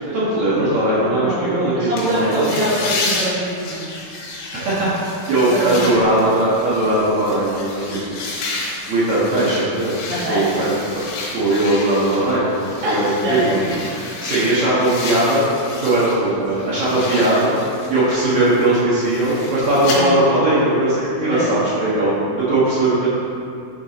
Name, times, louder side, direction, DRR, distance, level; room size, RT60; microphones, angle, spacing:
voice 1, 0.1-2.6 4.5-8.2 8.9-11.0 11.3-13.6 14.2-15.4 15.8-17.5 17.9-23.1, right 1 dB, 65° right, -10 dB, 1.8 m, -19 dB
voice 2, 1.0-3.8 5.5-6.0 10.1-10.7 12.8-13.8 19.9-20.2 21.3-21.5, right 1 dB, 80° right, -8 dB, 4.1 m, -24 dB
sound 1, 2.0-16.2 16.5-20.0, left 3 dB, 75° left, 3.4 m, -31 dB
9.6 x 4.8 x 4.1 m, 2.5 s
omnidirectional pair, 5.3 m